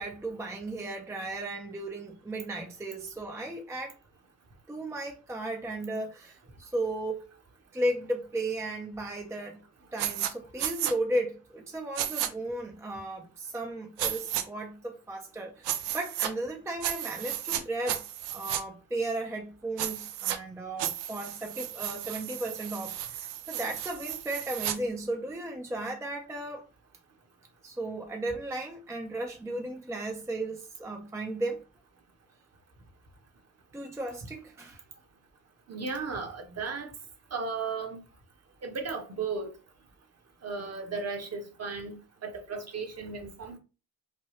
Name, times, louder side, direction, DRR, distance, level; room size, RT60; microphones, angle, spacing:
voice 1, 0.0-3.9 4.7-7.3 7.7-9.6 9.9-18.0 18.3-26.6 27.6-31.6 33.7-34.8, right 1 dB, 5° right, 0.5 m, -35 dB
sound 1, 10.0-10.3 10.6-10.9 12.0-12.3 14.0-14.4 15.6-16.3 16.8-17.6 17.9-18.6 19.8-20.4 20.8-24.8, right 11 dB, 70° right, 0.6 m, -33 dB
voice 2, 35.7-36.9 37.3-38.0 38.6-39.5 40.4-43.6, right 4 dB, 35° right, 1.0 m, -35 dB
3.3 x 2.2 x 3.1 m
supercardioid pair, 65°, 42 cm